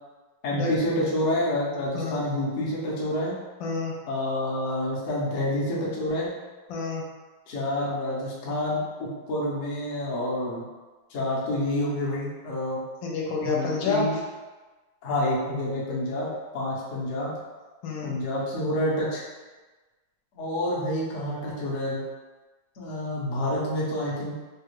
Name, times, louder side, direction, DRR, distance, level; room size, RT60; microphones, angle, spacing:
voice 1, 0.4-3.3 4.1-6.3 7.5-10.6 11.1-12.8 13.4-14.2 15.0-16.3 16.5-17.3 18.0-19.2 20.3-22.0 22.8-24.3, left 1 dB, 55° left, -6 dB, 0.9 m, -28 dB
voice 2, 3.6-3.9 6.7-7.0 13.0-14.1 17.8-18.2, left 4 dB, 80° left, -2 dB, 1.4 m, -28 dB
3.3 x 2.4 x 3.0 m, 1.3 s
omnidirectional pair, 2.1 m